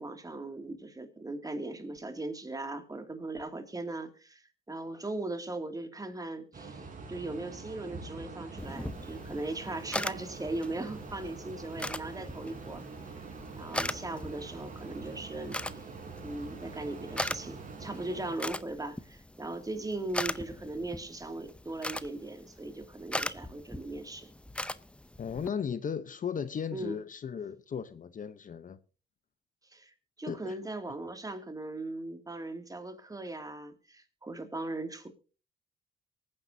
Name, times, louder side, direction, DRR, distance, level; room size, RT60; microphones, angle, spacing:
voice 1, 0.0-12.8 13.6-15.9 16.2-24.3 26.7-27.0 29.7-35.1, right 2 dB, 20° right, 2.3 m, -39 dB
sound 1, 6.5-18.4, right 4 dB, 45° right, 4.1 m, -45 dB
sound 2, 8.6-25.5, left 1 dB, 5° left, 0.6 m, -40 dB
voice 2, 25.2-28.8 30.3-30.6, left 7 dB, 40° left, 0.8 m, -36 dB
24.0 x 9.8 x 2.7 m
cardioid pair, 90°, 20 cm